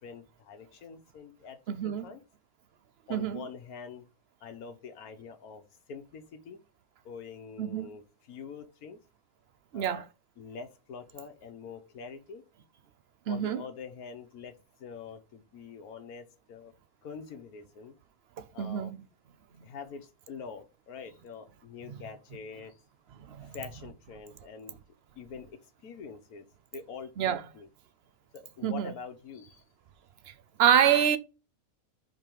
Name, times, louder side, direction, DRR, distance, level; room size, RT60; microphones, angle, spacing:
voice 1, 0.0-1.6 1.8-2.2 3.1-4.1 4.4-5.6 5.9-6.6 7.0-9.0 9.7-10.0 10.4-12.4 13.3-14.5 14.8-16.7 17.0-17.9 18.5-18.9 19.6-22.7 23.5-24.8 25.2-26.5 26.7-27.7 28.3-29.6, left 5 dB, 90° left, 1.4 m, -45 dB
voice 2, 1.7-2.1 3.1-3.4 7.6-7.9 9.7-10.1 13.3-13.6 18.6-19.0 21.9-22.0 23.2-23.6 27.2-27.4 28.6-28.9 30.6-31.2, right 9 dB, 55° right, 0.8 m, -26 dB
5.3 x 4.2 x 4.6 m
omnidirectional pair, 1.5 m